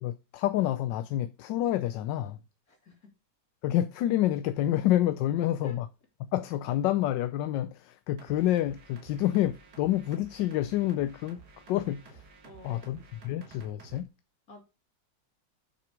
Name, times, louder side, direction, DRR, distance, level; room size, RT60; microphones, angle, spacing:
voice 1, 0.0-2.4 3.6-5.9 6.3-11.4 11.7-12.2 12.6-14.1, left 13 dB, 80° left, 1.2 m, -28 dB
voice 2, 2.7-3.1 5.3-5.7 12.4-12.8 14.5-14.6, right 1 dB, 50° left, 3.0 m, -51 dB
sound 1, 8.2-14.0, right 4 dB, 60° right, 2.1 m, -53 dB
7.1 x 6.0 x 5.0 m
omnidirectional pair, 2.0 m